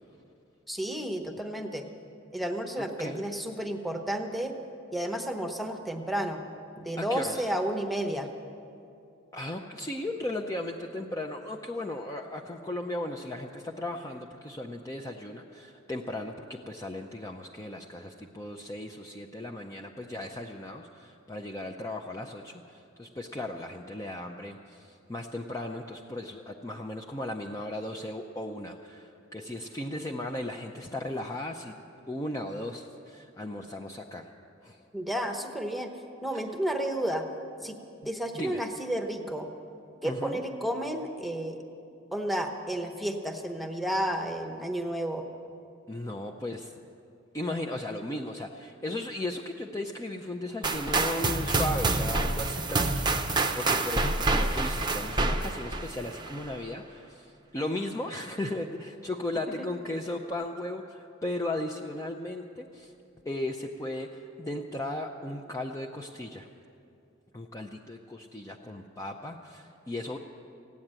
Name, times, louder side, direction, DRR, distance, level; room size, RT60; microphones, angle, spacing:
voice 1, 0.7-1.9 2.3-4.5 4.9-6.4 6.8-8.3 34.9-35.9 36.2-37.2 37.6-37.8 38.0-39.5 40.0-41.6 42.1-45.2 59.6-59.7, right 1 dB, ahead, 4 dB, 0.9 m, -31 dB
voice 2, 2.8-3.2 7.0-7.5 9.3-31.7 32.1-34.3 34.6-34.8 36.3-36.5 38.3-38.6 40.0-40.4 45.9-46.7 47.3-62.9 63.3-66.5 67.3-70.2, left 1 dB, 15° left, 1 dB, 0.6 m, -36 dB
sound 1, 50.6-56.5, right 3 dB, 20° right, 0.7 m, -27 dB
16.0 x 9.4 x 8.8 m, 2.6 s
head